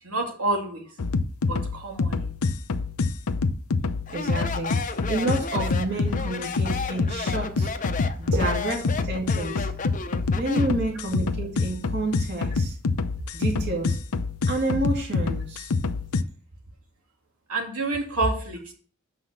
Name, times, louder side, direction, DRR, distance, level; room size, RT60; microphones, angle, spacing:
voice 1, 0.0-0.9 1.5-2.3 8.3-8.4 17.5-18.7, right 2 dB, 85° right, 2 dB, 2.4 m, -28 dB
sound 1, 1.0-16.2, left 4 dB, 90° left, 0.6 m, -26 dB
Speech, 4.1-10.8, left 5 dB, 35° left, 0.7 m, -33 dB
voice 2, 4.1-7.7 8.2-8.8 9.0-9.7 10.4-12.8 13.3-14.0 14.5-15.7, right 2 dB, 50° right, 0 dB, 2.3 m, -29 dB
7.3 x 5.9 x 6.8 m, 0.43 s
head